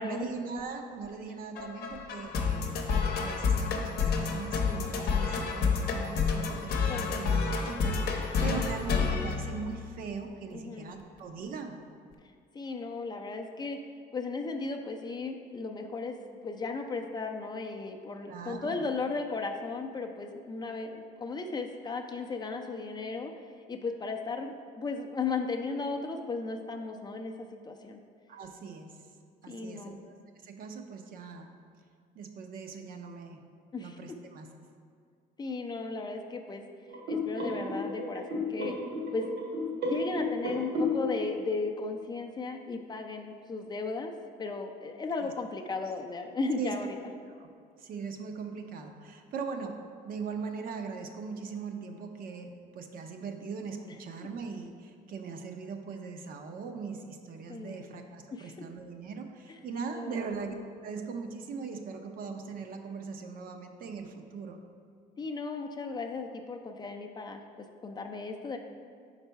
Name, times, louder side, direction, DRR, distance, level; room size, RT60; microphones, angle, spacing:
voice 1, 0.0-11.8 18.3-18.8 28.3-29.0 29.4-30.1 30.4-31.5 32.2-33.4 33.8-34.5 45.2-45.3 46.6-46.8 47.4-47.5 47.8-60.5 60.8-64.6, right 5 dB, 60° right, 5 dB, 0.6 m, -40 dB
sound 1, 1.6-10.1, left 5 dB, 65° left, 0.7 m, -29 dB
voice 2, 10.5-10.9 12.5-13.8 14.1-16.2 16.4-23.3 23.7-28.0 29.5-30.0 33.7-34.0 35.4-36.6 37.1-38.8 39.1-39.3 39.7-44.1 44.4-47.0 53.9-54.0 57.5-57.9 58.3-58.5 59.5-59.6 59.9-60.3 65.2-68.6, left 4 dB, 25° left, 4 dB, 0.4 m, -35 dB
sound 2, 36.9-41.5, left 2 dB, 80° right, 1.4 m, -33 dB
5.4 x 4.0 x 4.5 m, 2.2 s
cardioid pair, 110°, 17 cm